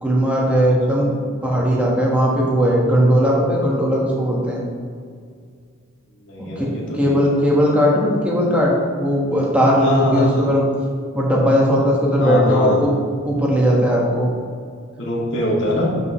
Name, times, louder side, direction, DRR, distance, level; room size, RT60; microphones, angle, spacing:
voice 1, 0.0-1.1 1.4-4.6 6.4-10.6 11.1-12.9 13.2-14.3, equal, 5° right, -4 dB, 1.7 m, -18 dB
voice 2, 6.3-7.1 9.8-10.5 12.2-12.8 15.0-15.9, left 1 dB, 60° left, -5 dB, 2.3 m, -22 dB
12.0 x 5.5 x 3.3 m, 2.1 s
head